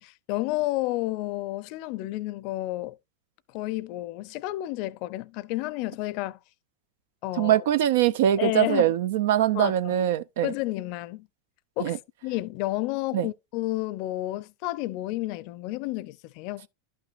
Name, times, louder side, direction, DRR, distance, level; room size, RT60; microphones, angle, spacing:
voice 1, 0.0-3.0 3.5-6.4 7.2-7.6 8.4-8.9 9.5-9.9 10.4-11.3 11.8-16.7, left 17 dB, 55° left, 0.5 m, -31 dB
voice 2, 7.4-10.5 11.8-12.0 13.1-13.3, right 11 dB, 75° right, 0.5 m, -23 dB
11.5 x 5.9 x 2.5 m
hypercardioid pair, 115°, 0 cm